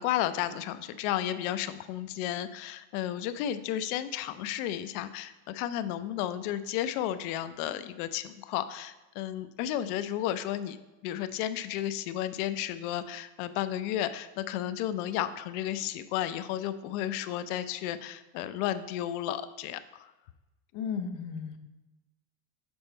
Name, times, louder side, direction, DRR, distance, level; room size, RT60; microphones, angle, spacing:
voice 1, 0.0-10.8 11.0-20.1, left 12 dB, 85° left, 12 dB, 0.6 m, -33 dB
voice 2, 20.7-21.6, left 6 dB, 45° left, 7 dB, 0.6 m, -34 dB
7.1 x 4.4 x 4.3 m, 1.1 s
cardioid pair, 165°, 43 cm